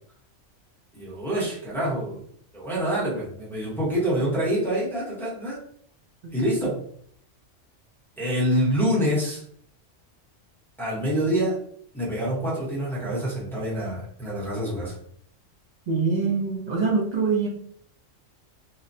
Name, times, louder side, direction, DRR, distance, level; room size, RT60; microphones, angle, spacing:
voice 1, 0.9-2.2 2.5-5.6 6.3-6.8 8.2-9.4 10.8-11.6 11.9-15.0, equal, ahead, -8 dB, 0.8 m, -26 dB
voice 2, 15.9-17.5, right 4 dB, 45° right, -2 dB, 0.6 m, -24 dB
2.7 x 2.1 x 2.6 m, 0.62 s
omnidirectional pair, 1.3 m